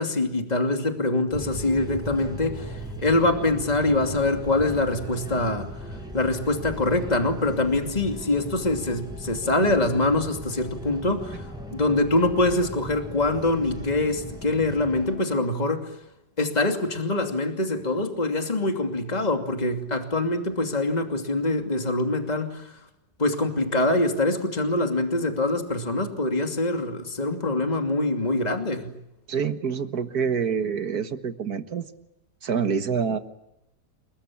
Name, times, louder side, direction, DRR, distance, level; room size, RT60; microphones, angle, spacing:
voice 1, 0.0-5.7 6.1-15.9 16.4-22.8 23.2-28.9, left 2 dB, 20° left, 4 dB, 2.8 m, -24 dB
sound 1, 1.3-15.2, equal, ahead, 6.1 m, -38 dB
voice 2, 29.3-31.9 32.4-33.2, right 6 dB, 60° right, 9 dB, 1.9 m, -26 dB
29.5 x 21.0 x 8.7 m, 0.84 s
omnidirectional pair, 1.9 m